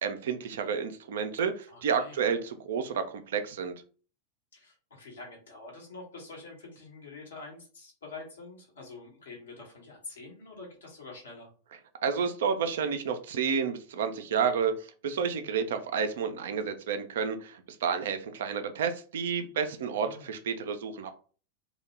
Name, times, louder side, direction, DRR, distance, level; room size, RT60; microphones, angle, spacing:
voice 1, 0.0-3.7 12.0-14.7 15.0-21.1, right 6 dB, 60° right, 8 dB, 0.4 m, -30 dB
voice 2, 1.7-2.2 4.5-11.5 20.0-20.3, left 3 dB, 65° left, -1 dB, 1.0 m, -46 dB
2.2 x 2.0 x 3.0 m, 0.39 s
figure-of-eight pair, 90°, 0 cm